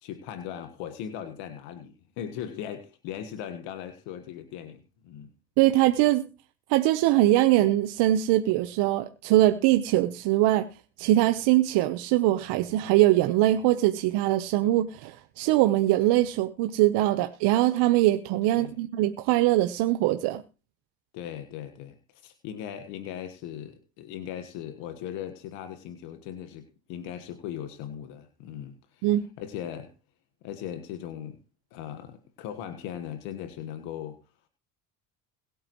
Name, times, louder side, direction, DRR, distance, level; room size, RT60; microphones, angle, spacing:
voice 1, 0.0-5.3 18.5-18.8 21.1-29.1 29.4-29.9 30.4-31.4 31.7-34.2, left 10 dB, 75° left, 1.6 m, -38 dB
voice 2, 5.6-6.3 6.7-10.7 11.0-20.4 29.0-29.2, right 15 dB, 70° right, 1.1 m, -22 dB
22.0 x 8.8 x 3.1 m
supercardioid pair, 75°, 42 cm